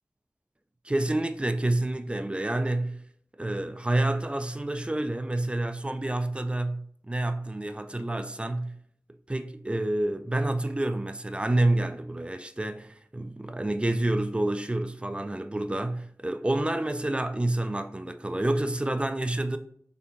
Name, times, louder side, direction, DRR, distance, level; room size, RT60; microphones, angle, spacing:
voice 1, 0.8-3.0 3.4-8.8 9.3-19.6, right 1 dB, 20° right, 0.3 m, -28 dB
4.4 x 3.3 x 2.5 m
wide cardioid pair, 60°, 6 cm